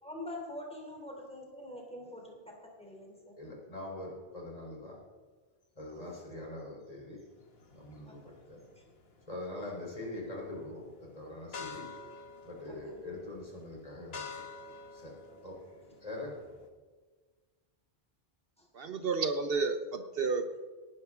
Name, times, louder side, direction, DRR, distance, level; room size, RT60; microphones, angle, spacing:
voice 1, 0.0-3.4 5.9-6.2 8.0-8.2 8.8-8.9 12.6-13.0 15.3-15.4 18.6-18.7, left 1 dB, 5° left, 0 dB, 3.0 m, -45 dB
voice 2, 3.4-5.0 5.7-7.2 7.7-8.6 9.3-11.9 12.5-14.4 14.9-15.1 15.4-15.6 16.0-16.3, left 2 dB, 35° left, -2 dB, 3.8 m, -43 dB
sound 1, 7.4-16.7, left 4 dB, 70° left, 1.5 m, -49 dB
voice 3, 18.7-20.6, right 4 dB, 65° right, 8 dB, 1.0 m, -31 dB
18.0 x 11.0 x 3.7 m, 1.4 s
omnidirectional pair, 1.1 m